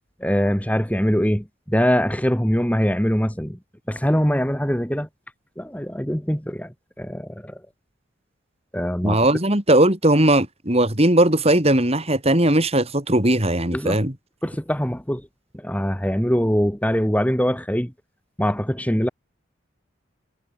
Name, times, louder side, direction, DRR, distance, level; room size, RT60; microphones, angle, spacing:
voice 1, 0.2-3.6 3.9-5.1 5.6-7.6 8.7-9.2 13.7-14.0 14.4-15.3 15.5-17.9 18.4-19.1, equal, 5° left, 2.7 m, -23 dB
voice 2, 9.0-14.1, right 1 dB, 30° right, 3.6 m, -18 dB
head